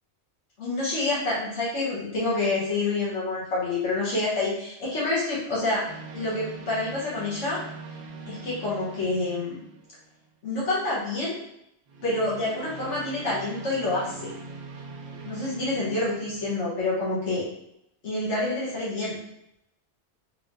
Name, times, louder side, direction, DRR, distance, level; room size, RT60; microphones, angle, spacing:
voice 1, 0.6-5.9 6.1-7.6 8.3-9.6 10.4-11.4 12.0-14.3 15.2-17.4 18.0-19.2, left 2 dB, 85° left, -7 dB, 1.4 m, -27 dB
sound 1, 5.9-10.3 11.9-16.7, right 3 dB, 70° right, 0.8 m, -42 dB
3.4 x 3.2 x 2.6 m, 0.80 s
omnidirectional pair, 1.2 m